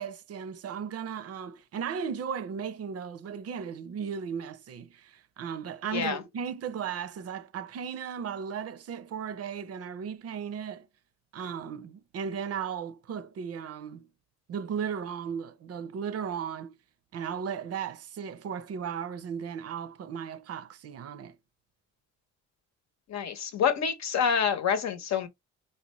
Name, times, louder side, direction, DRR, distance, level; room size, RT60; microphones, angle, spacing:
voice 1, 0.0-10.9 11.3-14.1 14.5-16.8 17.1-21.4, right 7 dB, 55° right, 0.6 m, -36 dB
voice 2, 23.1-25.3, left 7 dB, 65° left, 0.9 m, -27 dB
4.0 x 2.2 x 2.9 m
cardioid pair, 90°, 30 cm